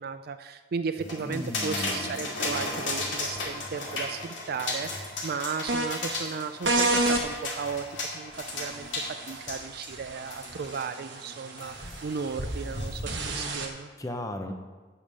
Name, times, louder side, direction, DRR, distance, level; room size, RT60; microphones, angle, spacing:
voice 1, 0.0-13.9, right 5 dB, 55° right, 10 dB, 0.4 m, -35 dB
sound 1, 1.0-10.9 11.6-13.3, left 2 dB, 80° left, 2.4 m, -35 dB
voice 2, 1.3-2.2 14.0-14.5, left 1 dB, 20° left, 5 dB, 0.9 m, -35 dB
sound 2, 5.7-5.9 6.7-7.2 8.3-13.7, right 2 dB, 70° right, 1.3 m, -31 dB
8.6 x 7.2 x 6.4 m, 1.3 s
head